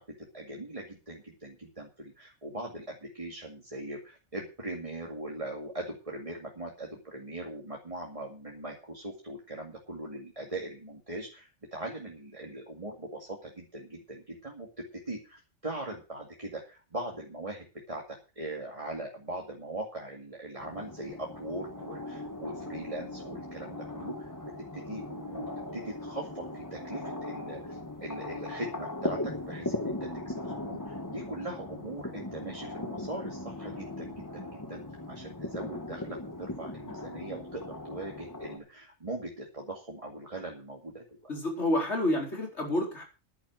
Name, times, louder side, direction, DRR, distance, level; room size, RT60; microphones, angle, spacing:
voice 1, 0.0-24.3 24.7-34.8 35.1-41.0, right 1 dB, 25° right, 0 dB, 2.3 m, -40 dB
sound 1, 20.6-38.6, left 1 dB, 15° left, 1.5 m, -39 dB
voice 2, 41.3-43.0, left 1 dB, 55° left, 1 dB, 4.7 m, -29 dB
11.0 x 10.5 x 6.2 m, 0.33 s
omnidirectional pair, 1.4 m